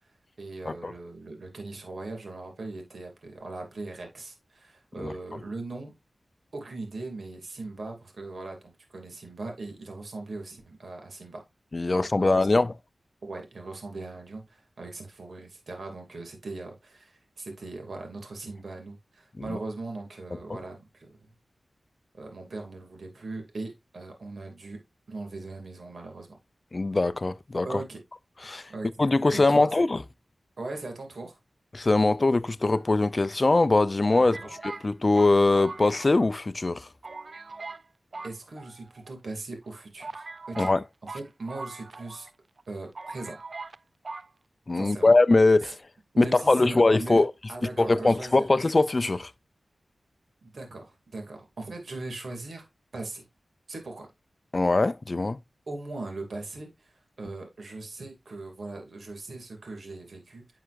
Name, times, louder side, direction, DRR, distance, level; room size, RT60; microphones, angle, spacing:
voice 1, 0.4-6.0 6.5-11.4 12.1-12.5 13.2-21.3 22.1-24.8 25.1-26.4 27.6-28.0 28.4-28.9 29.3-29.7 30.6-31.4 34.2-34.5 38.2-40.7 41.1-42.3 42.7-43.4 44.7-45.2 46.1-47.2 47.5-48.5 50.4-52.7 52.9-53.2 53.7-54.1 55.7-56.9 57.2-60.6, right 2 dB, 70° right, 2.4 m, -39 dB
voice 2, 11.7-12.7 19.4-19.6 20.5-20.6 26.7-27.8 28.4-28.7 29.0-30.0 31.7-36.9 40.6-40.8 44.7-45.8 46.2-47.3 47.8-49.3 54.5-55.4, left 2 dB, 40° left, 0.4 m, -22 dB
sound 1, 32.6-33.4 34.1-36.4 36.7-36.8 37.0-37.8 38.1-39.1 39.6-39.7 40.0-42.3 42.6-42.7 42.9-43.8 44.0-44.3, right 3 dB, 50° right, 0.3 m, -41 dB
9.8 x 5.7 x 2.5 m
wide cardioid pair, 85°, 0 cm